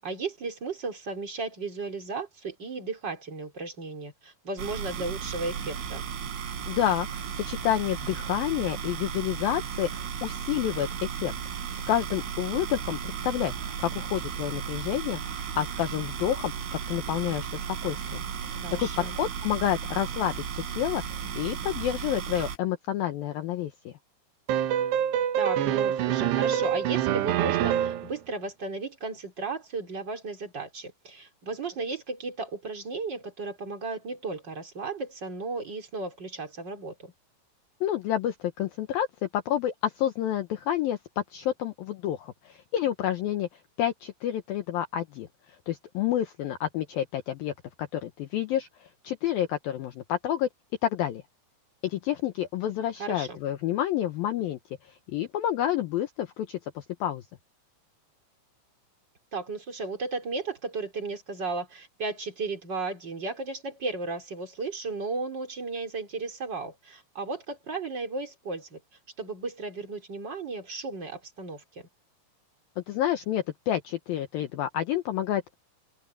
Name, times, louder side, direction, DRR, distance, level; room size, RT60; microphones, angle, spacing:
voice 1, 0.0-6.0 18.6-19.2 25.4-37.1 53.0-53.4 59.3-68.8 69.2-71.9, right 3 dB, 25° right, 4.0 m, -35 dB
sound 1, 4.6-22.6, right 7 dB, 90° right, 7.4 m, -35 dB
voice 2, 6.7-11.3 11.9-16.5 16.9-18.2 18.5-23.9 37.8-41.0 41.3-43.5 43.8-45.3 45.7-47.5 47.8-50.5 50.8-51.2 51.8-57.2 72.8-75.5, left 11 dB, 85° left, 2.1 m, -29 dB
sound 2, 24.5-28.1, right 10 dB, 70° right, 3.0 m, -25 dB
open air
omnidirectional pair, 5.6 m